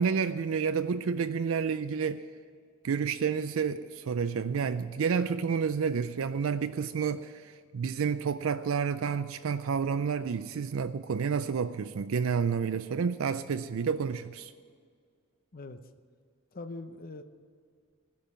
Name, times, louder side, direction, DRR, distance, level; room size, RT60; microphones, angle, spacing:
voice 1, 0.0-2.2 2.8-14.5, right 6 dB, 70° right, 0.4 m, -30 dB
voice 2, 16.5-17.2, left 2 dB, 45° left, 0.7 m, -42 dB
15.5 x 5.4 x 9.8 m
head